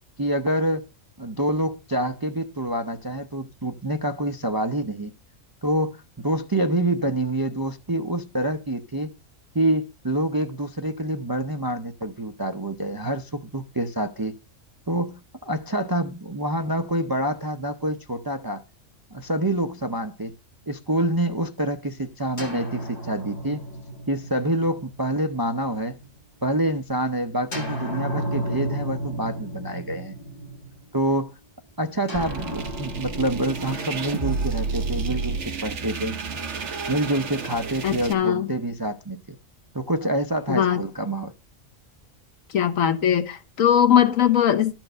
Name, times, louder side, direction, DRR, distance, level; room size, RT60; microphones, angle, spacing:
voice 1, 0.2-0.9 1.2-5.1 5.6-9.1 9.5-14.4 14.9-18.6 19.1-20.3 20.7-23.6 24.1-26.0 26.4-30.1 30.9-31.3 31.8-36.2 36.9-39.4 39.7-41.3, right 1 dB, 35° right, 0.3 m, -26 dB
sound 1, 22.4-26.2 27.5-31.1 32.1-36.2, right 1 dB, 35° left, 2.2 m, -34 dB
sound 2, 32.1-38.1, right 5 dB, 65° right, 1.4 m, -31 dB
voice 2, 37.8-38.5 40.5-40.8 42.5-44.7, left 9 dB, 80° left, 1.4 m, -20 dB
12.5 x 4.5 x 6.6 m
omnidirectional pair, 1.4 m